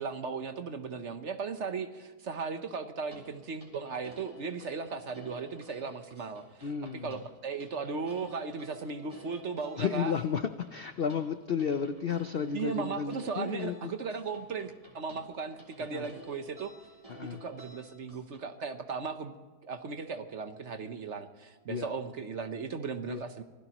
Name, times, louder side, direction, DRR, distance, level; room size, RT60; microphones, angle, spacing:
voice 1, 0.0-6.7 7.0-10.1 12.5-16.7 17.2-19.3 19.6-23.4, right 5 dB, 50° right, 8 dB, 1.1 m, -37 dB
sound 1, 3.1-18.4, right 1 dB, 20° right, 3.4 m, -53 dB
voice 2, 6.6-7.2 9.8-13.9 15.8-16.1 17.1-17.4 21.7-21.9 23.1-23.2, left 7 dB, 85° left, 9 dB, 0.5 m, -33 dB
25.5 x 17.0 x 3.0 m, 1.4 s
omnidirectional pair, 1.8 m